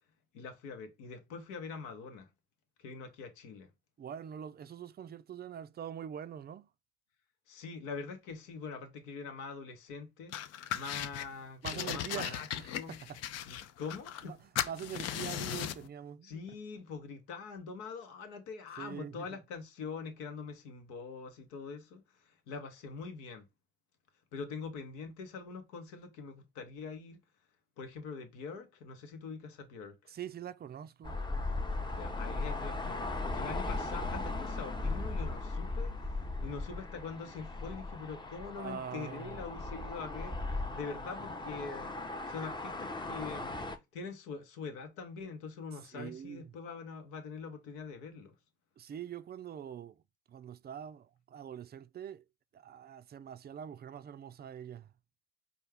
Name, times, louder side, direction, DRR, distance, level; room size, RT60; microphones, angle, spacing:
voice 1, 0.3-2.3 2.8-3.7 7.5-10.4 10.7-12.5 12.7-13.0 13.5-14.4 16.2-23.5 24.3-27.2 27.8-30.1 31.9-40.4 40.7-41.9 42.2-43.6 43.9-48.3, left 5 dB, 75° left, 1.0 m, -44 dB
voice 2, 4.0-6.7 11.6-12.7 14.2-16.4 18.8-19.3 30.1-31.2 38.6-39.4 45.9-46.5 48.8-50.0 50.3-52.2 52.5-54.9, right 9 dB, 35° right, 0.4 m, -44 dB
sound 1, 10.3-11.3 11.6-14.3 14.6-15.9, left 11 dB, 55° left, 0.5 m, -37 dB
sound 2, 31.0-43.8, left 2 dB, 15° left, 0.7 m, -37 dB
4.4 x 2.4 x 3.3 m
hypercardioid pair, 55°, 30 cm